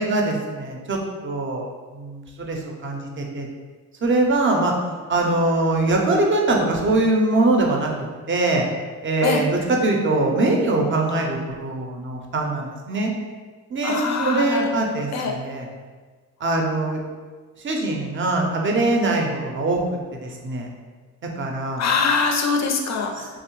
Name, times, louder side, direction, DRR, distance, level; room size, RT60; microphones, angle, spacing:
voice 1, 0.0-3.5 4.0-4.7 5.1-8.7 9.0-13.1 13.7-15.7 16.4-17.0 17.6-19.8 20.2-20.7 21.4-21.8, right 2 dB, 30° right, 1 dB, 0.5 m, -22 dB
voice 2, 13.8-14.8 15.1-15.4 21.8-23.4, left 4 dB, 45° left, 2 dB, 0.5 m, -23 dB
2.7 x 2.0 x 2.9 m, 1.5 s
supercardioid pair, 65°, 39 cm